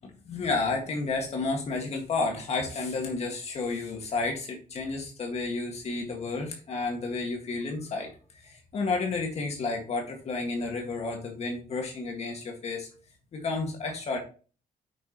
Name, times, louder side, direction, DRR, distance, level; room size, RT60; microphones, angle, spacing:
voice 1, 0.0-8.1 8.4-12.9 13.3-14.2, left 3 dB, 50° left, 1 dB, 1.8 m, -31 dB
8.3 x 6.3 x 3.0 m, 0.36 s
wide cardioid pair, 170°, 14 cm